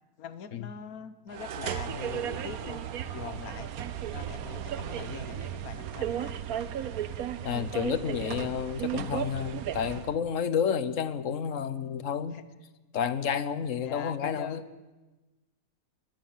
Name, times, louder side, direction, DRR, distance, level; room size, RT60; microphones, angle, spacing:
voice 1, 0.2-2.8 3.1-3.7 4.1-6.3 12.3-12.4 13.8-14.6, left 8 dB, 85° left, 13 dB, 1.5 m, -42 dB
sound 1, 1.3-10.2, right 10 dB, 85° right, 1.4 m, -35 dB
voice 2, 7.4-12.4 12.9-14.6, left 7 dB, 65° left, 14 dB, 1.4 m, -30 dB
21.5 x 19.5 x 7.5 m, 1.1 s
omnidirectional pair, 1.5 m